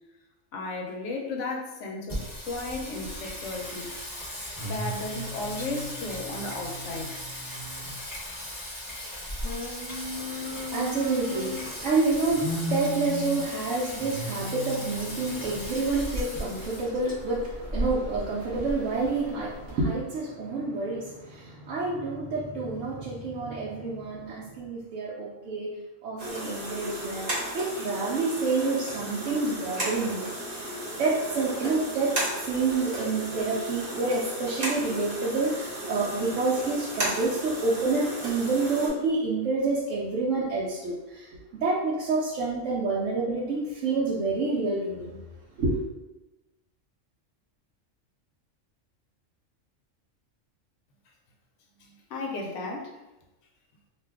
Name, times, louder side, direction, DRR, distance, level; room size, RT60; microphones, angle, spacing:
voice 1, 0.5-3.9 4.6-7.1 51.8-52.9, left 2 dB, 70° left, 1 dB, 0.9 m, -34 dB
Singing, 2.1-19.7, left 1 dB, 20° left, 0.7 m, -35 dB
voice 2, 10.1-25.7 26.0-27.3 27.5-30.7 31.0-45.2 45.6-45.8, right 3 dB, 75° right, -6 dB, 0.9 m, -28 dB
sound 1, 26.2-38.9, right 1 dB, 30° right, 0.8 m, -34 dB
2.5 x 2.3 x 3.4 m, 1.0 s
omnidirectional pair, 1.3 m